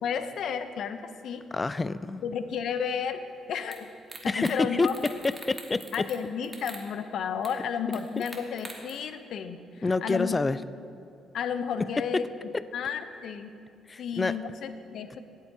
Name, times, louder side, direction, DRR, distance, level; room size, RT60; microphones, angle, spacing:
voice 1, 0.0-1.5 2.2-3.2 3.5-3.9 4.2-5.0 5.9-10.4 11.3-12.3 12.7-13.5 14.0-15.2, left 7 dB, 70° left, 10 dB, 0.6 m, -32 dB
voice 2, 1.5-2.2 4.3-4.9 5.2-5.9 9.8-10.6 13.9-14.4, left 3 dB, 25° left, 15 dB, 0.3 m, -27 dB
sound 1, 3.7-3.8 4.1-4.6 4.8-6.2 6.4-6.8 7.4-7.5 7.9-8.9, right 2 dB, 20° right, 1.5 m, -43 dB
17.0 x 8.2 x 2.7 m, 2.5 s
cardioid pair, 90°, 0 cm